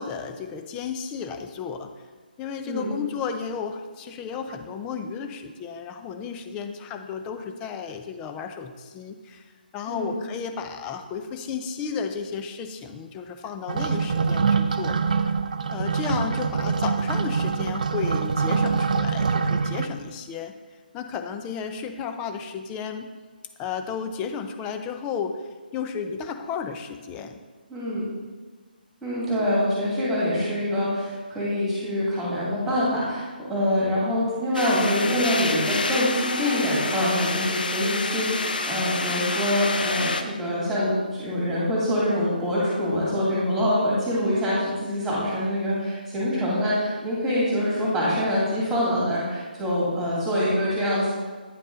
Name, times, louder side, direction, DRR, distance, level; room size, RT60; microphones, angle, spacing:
voice 1, 0.0-1.9 2.4-9.4 9.7-15.3 15.7-20.5 20.9-23.1 23.6-25.4 25.7-27.4, left 6 dB, 15° left, 6 dB, 0.4 m, -33 dB
sound 1, 13.7-19.9, right 5 dB, 50° right, 0.4 m, -24 dB
voice 2, 27.7-28.0 29.0-51.1, equal, 5° right, -7 dB, 2.3 m, -25 dB
sound 2, 34.5-40.2, left 3 dB, 65° left, 0.6 m, -28 dB
9.1 x 5.3 x 3.7 m, 1.4 s
figure-of-eight pair, 145°, 5 cm